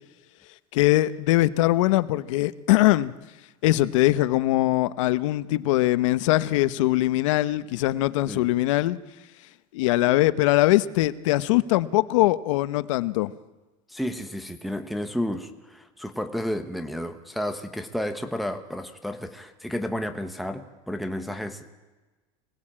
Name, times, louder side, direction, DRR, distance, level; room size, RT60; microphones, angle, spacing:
voice 1, 0.7-3.1 3.6-9.0 9.7-13.3, left 17 dB, 90° left, 15 dB, 1.0 m, -22 dB
voice 2, 13.9-21.8, equal, ahead, 5 dB, 1.1 m, -32 dB
25.0 x 18.0 x 8.8 m, 1.2 s
cardioid pair, 165°, 16 cm